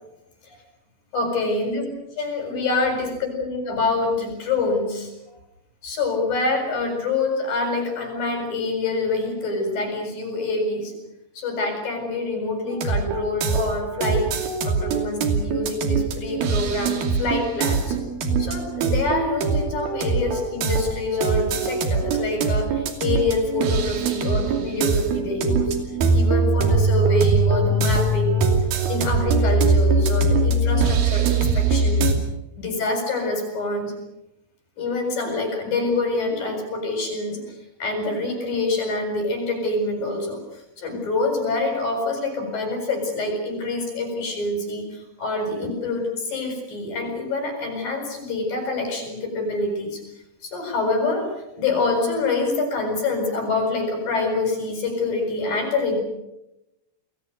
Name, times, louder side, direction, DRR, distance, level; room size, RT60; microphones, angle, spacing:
voice 1, 1.1-1.9 2.2-5.1 5.8-10.9 11.4-14.3 14.6-18.0 18.4-25.8 26.1-28.5 28.9-32.1 32.6-33.9 34.8-37.4 37.8-50.0 50.4-51.3 51.6-56.0, left 2 dB, 65° left, 4 dB, 9.0 m, -26 dB
sound 1, 12.7-32.1, right 3 dB, 75° right, 4.5 m, -22 dB
29.5 x 21.5 x 6.7 m, 0.88 s
omnidirectional pair, 4.3 m